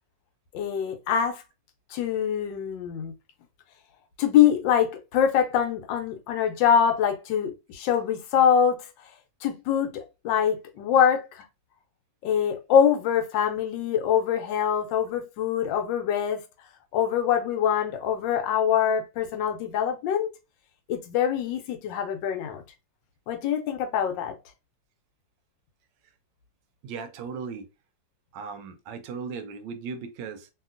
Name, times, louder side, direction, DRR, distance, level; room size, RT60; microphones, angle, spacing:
voice 1, 0.5-1.4 1.9-3.1 4.2-8.9 9.4-11.4 12.2-16.4 16.9-20.3 20.9-22.6 23.3-24.3, left 8 dB, 80° left, 1.3 m, -24 dB
voice 2, 26.8-27.7 28.3-30.5, right 5 dB, 80° right, 1.2 m, -37 dB
2.8 x 2.7 x 2.4 m
omnidirectional pair, 2.0 m